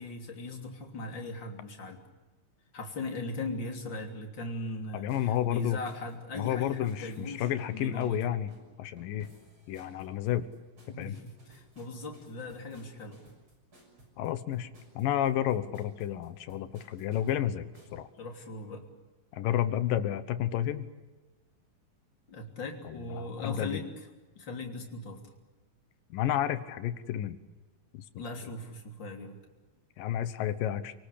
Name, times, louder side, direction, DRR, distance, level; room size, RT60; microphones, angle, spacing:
voice 1, 0.0-2.0 2.7-8.2 10.9-13.2 18.2-18.9 22.3-23.9 24.3-25.2 28.1-29.4, left 2 dB, 30° left, 2 dB, 3.5 m, -39 dB
voice 2, 4.9-5.8 6.4-8.5 8.8-9.3 9.7-10.5 11.0-11.2 14.2-14.7 15.0-17.7 17.9-18.1 19.3-20.9 22.9-23.8 26.1-27.4 27.9-28.0 30.0-30.9, left 11 dB, 70° left, 12 dB, 2.5 m, -31 dB
sound 1, 5.1-18.0, right 1 dB, 30° right, 7.2 m, -59 dB
29.5 x 19.0 x 8.4 m, 1.2 s
omnidirectional pair, 4.5 m